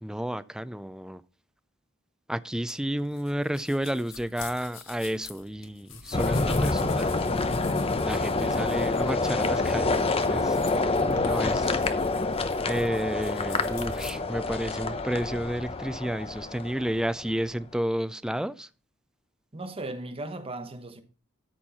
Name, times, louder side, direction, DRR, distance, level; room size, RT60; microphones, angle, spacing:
voice 1, 0.0-1.2 2.3-7.1 8.0-10.9 11.2-11.9 12.7-18.7, equal, 5° right, 0.4 m, -31 dB
sound 1, 2.7-14.1, left 5 dB, 70° left, 2.0 m, -45 dB
sound 2, 6.1-17.3, left 3 dB, 30° left, 0.7 m, -27 dB
voice 2, 10.7-11.3 19.5-21.0, right 2 dB, 25° right, 1.1 m, -37 dB
13.0 x 4.5 x 5.5 m
head